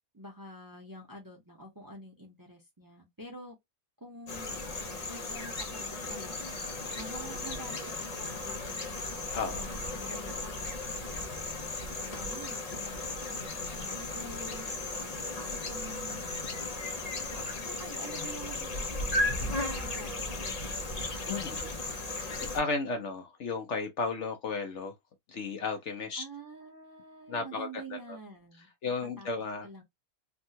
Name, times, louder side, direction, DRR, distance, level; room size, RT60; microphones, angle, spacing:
voice 1, 0.1-3.6 4.0-4.6 5.0-11.3 11.9-21.4 26.2-29.3 29.6-29.8, right 1 dB, 15° right, 0.8 m, -48 dB
sound 1, 4.3-22.6, left 2 dB, 40° left, 0.6 m, -36 dB
voice 2, 21.3-21.6 22.1-24.9 25.3-26.2 27.3-27.7 28.8-29.7, left 4 dB, 60° left, 0.9 m, -34 dB
3.6 x 2.2 x 2.7 m
omnidirectional pair, 1.5 m